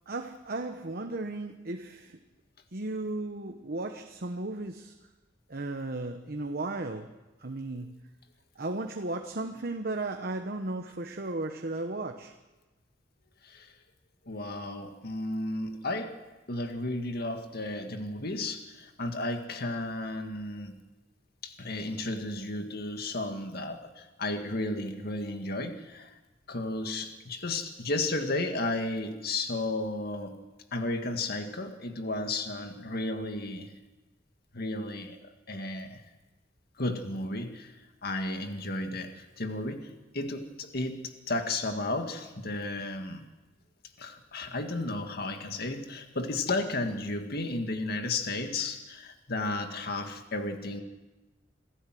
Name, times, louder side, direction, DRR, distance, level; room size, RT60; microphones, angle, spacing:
voice 1, 0.1-2.2 2.7-4.9 5.5-7.1 7.4-7.9 8.6-12.3, right 2 dB, 55° right, 5 dB, 1.1 m, -35 dB
voice 2, 14.3-16.2 16.5-20.8 21.4-26.1 26.5-30.4 30.7-33.7 34.5-35.2 35.5-36.0 36.8-37.7 38.0-43.2 44.0-50.8, left 2 dB, 55° left, 5 dB, 2.0 m, -33 dB
26.5 x 15.5 x 7.7 m, 1.1 s
head